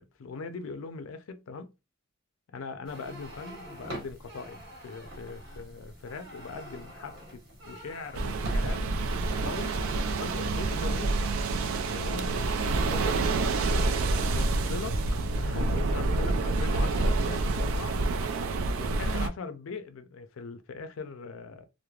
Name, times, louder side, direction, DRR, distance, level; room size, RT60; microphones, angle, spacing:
voice 1, 0.0-1.7 2.5-9.0 9.4-9.8 10.2-11.2 11.8-13.3 14.3-15.0 15.3-18.0 18.8-21.6, left 4 dB, 80° left, 0.4 m, -40 dB
sound 1, 2.8-11.0, equal, 65° right, 1.3 m, -45 dB
sound 2, 8.1-19.3, right 3 dB, 80° right, 0.4 m, -28 dB
3.1 x 2.0 x 2.3 m
head